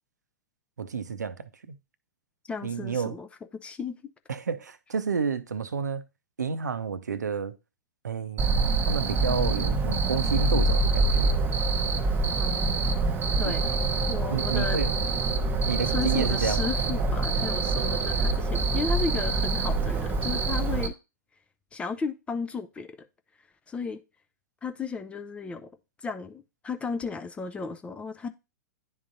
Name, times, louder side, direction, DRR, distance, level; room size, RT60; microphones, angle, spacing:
voice 1, 0.8-1.8 2.6-3.1 4.3-6.0 6.4-7.6 8.0-11.3 13.4-13.6 14.0-14.9 15.7-16.7, right 6 dB, 70° right, 0.6 m, -30 dB
voice 2, 2.5-3.3 3.5-4.0 12.4-13.8 14.1-14.8 15.9-20.9 21.7-23.1 23.7-24.0 24.6-25.7 26.0-28.3, left 5 dB, 10° left, 0.4 m, -34 dB
Cricket, 8.4-20.9, right 3 dB, 20° right, 0.7 m, -25 dB
10.5 x 3.7 x 2.6 m
figure-of-eight pair, 100°, 9 cm